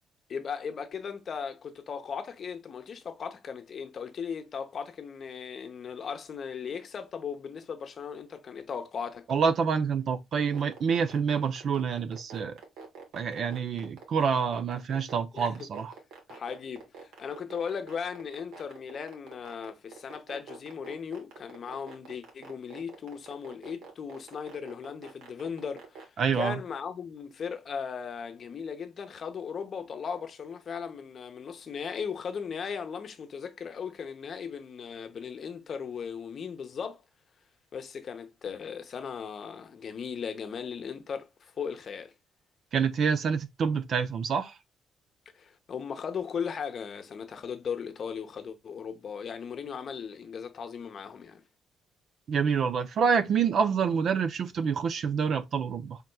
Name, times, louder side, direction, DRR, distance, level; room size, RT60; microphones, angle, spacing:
voice 1, 0.3-9.3 15.3-15.5 16.3-37.0 37.7-42.1 45.3-51.4, left 6 dB, 55° left, 0.7 m, -37 dB
voice 2, 9.3-12.6 13.1-15.9 26.2-26.5 42.7-44.5 52.3-56.0, right 6 dB, 60° right, 0.4 m, -27 dB
sound 1, 10.4-26.0, right 6 dB, 90° right, 1.2 m, -46 dB
4.2 x 3.6 x 2.2 m
cardioid pair, 90°, 0 cm